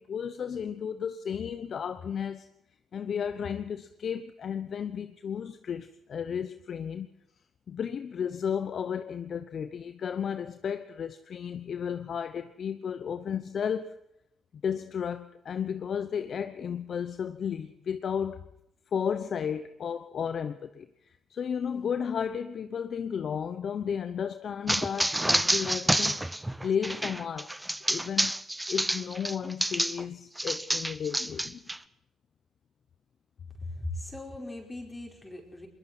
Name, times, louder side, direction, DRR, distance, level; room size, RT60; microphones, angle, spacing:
voice 1, 0.0-2.5 2.9-7.1 7.7-13.9 14.6-18.5 18.9-26.2 26.6-27.5 27.9-28.3 28.7-31.6, left 7 dB, 55° left, 0.9 m, -33 dB
sound 1, 24.7-30.0 30.4-31.8, right 1 dB, 10° right, 0.8 m, -28 dB
voice 2, 33.6-35.7, left 2 dB, 15° left, 4.9 m, -39 dB
22.0 x 20.5 x 6.1 m
cardioid pair, 90°, 0 cm